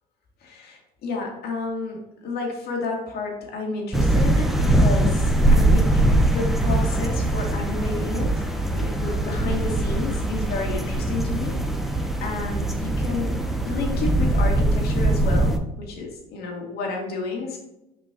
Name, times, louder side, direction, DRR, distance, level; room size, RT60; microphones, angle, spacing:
voice 1, 0.4-8.3 8.7-13.4 13.6-17.6, left 3 dB, 55° left, 0 dB, 2.2 m, -31 dB
sound 1, 3.9-15.6, right 1 dB, ahead, 0.9 m, -21 dB
7.1 x 5.2 x 2.9 m, 0.94 s
hypercardioid pair, 80°, 19 cm